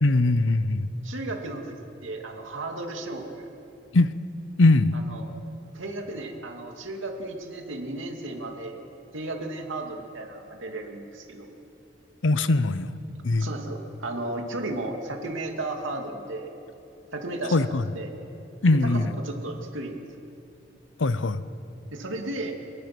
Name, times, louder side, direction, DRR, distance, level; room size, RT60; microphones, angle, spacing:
voice 1, 0.0-0.9 3.9-4.1 4.6-5.0 12.2-12.9 13.2-13.5 17.5-17.8 18.6-19.1 21.0-21.4, left 2 dB, 80° left, 14 dB, 0.8 m, -21 dB
voice 2, 1.0-1.8 2.0-3.5 4.9-5.3 5.7-8.8 9.1-11.5 13.4-16.5 17.1-18.1 18.7-20.0 21.9-22.6, right 2 dB, 90° right, 2 dB, 2.6 m, -34 dB
23.5 x 21.0 x 6.1 m, 2.8 s
head